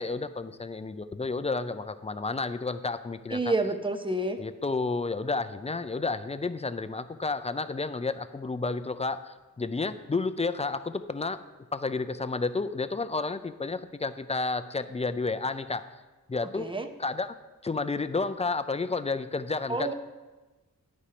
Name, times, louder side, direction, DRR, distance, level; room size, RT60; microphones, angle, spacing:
voice 1, 0.0-3.5 4.4-11.4 11.7-15.8 16.3-16.7 17.0-17.3 17.6-19.9, left 3 dB, 20° left, 12 dB, 0.4 m, -31 dB
voice 2, 3.3-4.4 16.6-16.9 19.7-19.9, right 2 dB, 15° right, 6 dB, 0.7 m, -28 dB
9.8 x 4.2 x 5.1 m, 1.2 s
wide cardioid pair, 55°, 34 cm